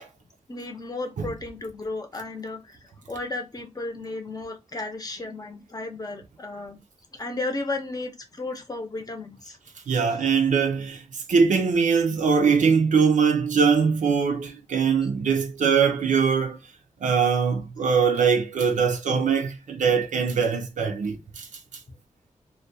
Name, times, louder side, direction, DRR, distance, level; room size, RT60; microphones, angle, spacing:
voice 1, 0.5-2.8 3.1-6.8 7.1-9.6 10.1-10.2, left 2 dB, 30° left, 0.6 m, -34 dB
voice 2, 9.9-16.6 17.0-21.5, right 6 dB, 75° right, 0.4 m, -22 dB
2.3 x 2.2 x 2.6 m
wide cardioid pair, 95°, 13 cm